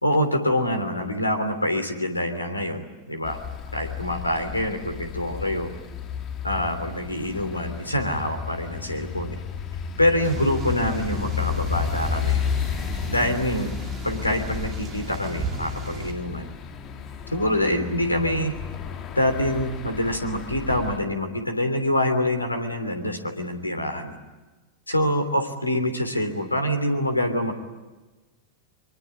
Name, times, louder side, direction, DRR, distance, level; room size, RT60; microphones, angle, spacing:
voice 1, 0.0-3.4 3.7-5.7 6.4-9.3 10.0-12.4 13.1-13.7 14.0-16.5 17.3-18.5 19.1-24.2 24.9-27.5, left 1 dB, 85° left, 8 dB, 3.2 m, -25 dB
sound 1, 3.2-21.0, left 7 dB, 35° left, 2.7 m, -32 dB
sound 2, 10.2-16.1, right 3 dB, 30° right, 5.0 m, -35 dB
24.5 x 24.0 x 9.7 m, 1.2 s
figure-of-eight pair, 90°, 0 cm